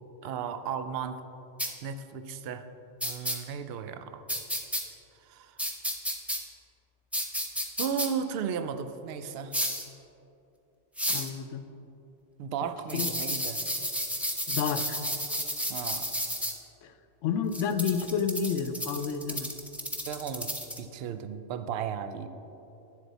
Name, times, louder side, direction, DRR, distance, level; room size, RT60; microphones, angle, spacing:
voice 1, 0.2-1.2 1.8-2.6 3.0-4.2 5.1-5.6 7.8-9.6 12.4-13.6 15.7-16.1 20.0-20.5 20.8-22.3, right 7 dB, 65° right, 10 dB, 0.7 m, -35 dB
sound 1, 1.6-1.7 3.0-3.4 4.3-4.8 5.6-6.4 7.1-8.1 9.5-9.8 11.0-11.3 12.9-16.5 17.5-20.8, equal, ahead, 0.4 m, -31 dB
voice 2, 11.1-11.7 12.9-13.1 14.5-15.0 16.8-16.9 17.2-19.5, left 6 dB, 80° left, 9 dB, 0.9 m, -30 dB
10.0 x 7.4 x 4.1 m, 2.9 s
omnidirectional pair, 1.2 m